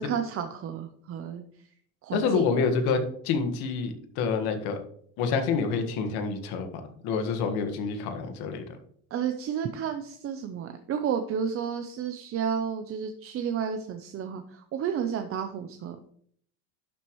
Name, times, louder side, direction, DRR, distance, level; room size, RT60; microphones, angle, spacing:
voice 1, 0.0-1.4 2.0-2.5 9.1-16.1, right 7 dB, 35° right, 7 dB, 0.7 m, -31 dB
voice 2, 2.1-4.8 5.2-6.7 7.0-8.6, left 5 dB, 70° left, 6 dB, 1.7 m, -27 dB
11.5 x 7.4 x 3.1 m, 0.63 s
cardioid pair, 145°, 39 cm